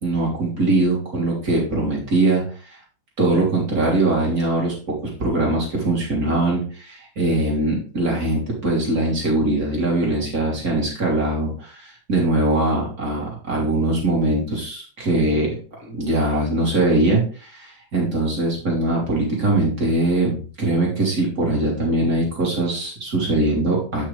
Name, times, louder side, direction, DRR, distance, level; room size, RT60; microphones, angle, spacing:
voice 1, 0.0-2.8 3.2-4.7 5.0-15.6 15.8-24.1, right 2 dB, 45° right, -3 dB, 3.6 m, -21 dB
8.9 x 6.7 x 3.4 m, 0.39 s
omnidirectional pair, 2.1 m